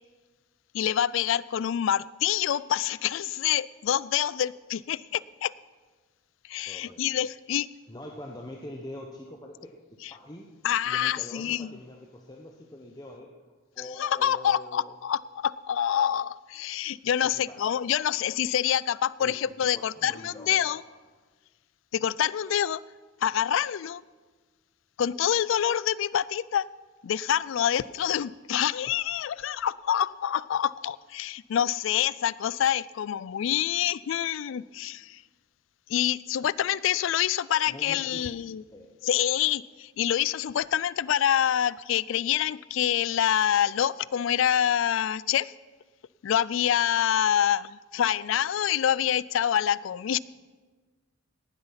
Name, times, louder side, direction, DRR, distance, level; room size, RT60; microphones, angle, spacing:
voice 1, 0.7-5.5 6.5-7.7 10.6-11.7 14.0-20.8 21.9-22.8 23.2-24.0 25.0-26.7 27.0-35.2 35.9-38.6 39.0-45.5 46.2-50.2, left 10 dB, 65° left, 21 dB, 0.3 m, -26 dB
voice 2, 6.7-7.0 7.9-9.8 10.1-10.5 10.8-13.3 13.8-14.9 17.2-17.7 18.0-18.2 19.2-20.8 37.7-38.2 38.7-38.9, left 1 dB, 20° left, 0 dB, 0.8 m, -44 dB
18.5 x 7.9 x 5.8 m, 1.4 s
head